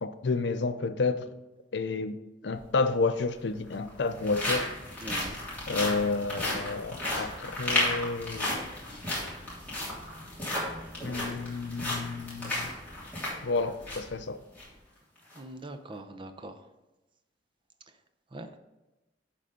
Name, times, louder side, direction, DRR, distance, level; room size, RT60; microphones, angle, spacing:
voice 1, 0.0-1.3 1.7-2.2 2.4-4.7 5.7-8.6 11.0-12.7 13.4-14.4, left 3 dB, 65° left, 11 dB, 0.5 m, -30 dB
sound 1, 2.5-2.6 3.6-14.1 14.5-14.6 15.2-15.4, left 1 dB, 10° left, 3.1 m, -34 dB
voice 2, 5.0-5.4 15.3-16.6 18.3-18.6, right 1 dB, 30° right, 8 dB, 0.6 m, -42 dB
11.0 x 3.8 x 5.1 m, 1.0 s
head